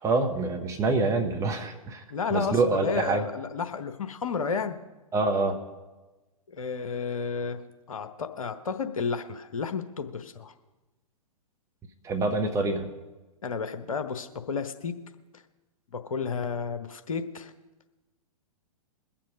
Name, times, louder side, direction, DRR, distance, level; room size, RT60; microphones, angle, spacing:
voice 1, 0.0-2.0 2.3-3.2 5.1-5.6 12.0-12.9, right 3 dB, 15° right, 2 dB, 1.6 m, -26 dB
voice 2, 2.1-4.8 6.5-7.6 7.9-10.5 13.4-14.9 15.9-17.5, left 5 dB, 65° left, 8 dB, 1.1 m, -32 dB
21.5 x 7.4 x 5.3 m, 1.2 s
figure-of-eight pair, 110°, 19 cm